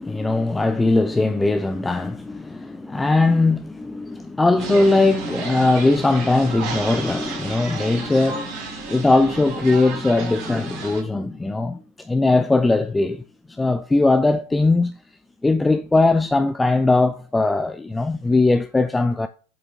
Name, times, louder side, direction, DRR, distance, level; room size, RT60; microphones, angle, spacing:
voice 1, 0.0-13.2 13.5-15.0 15.4-19.3, left 2 dB, 10° left, 0.4 m, -20 dB
sound 1, 4.6-11.0, right 5 dB, 40° right, 2.0 m, -32 dB
7.2 x 5.0 x 3.0 m
figure-of-eight pair, 90°, 0 cm